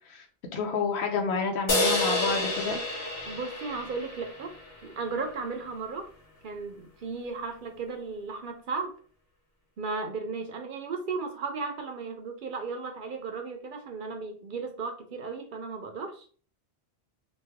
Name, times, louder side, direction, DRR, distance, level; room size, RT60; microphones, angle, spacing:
voice 1, 0.5-2.8, left 5 dB, 80° left, 3 dB, 1.0 m, -29 dB
sound 1, 1.7-5.2, left 1 dB, 65° left, 1.1 m, -29 dB
voice 2, 3.3-6.1 6.4-8.9 9.8-16.3, right 4 dB, 60° right, 5 dB, 0.6 m, -35 dB
3.1 x 2.2 x 3.4 m, 0.42 s
omnidirectional pair, 1.1 m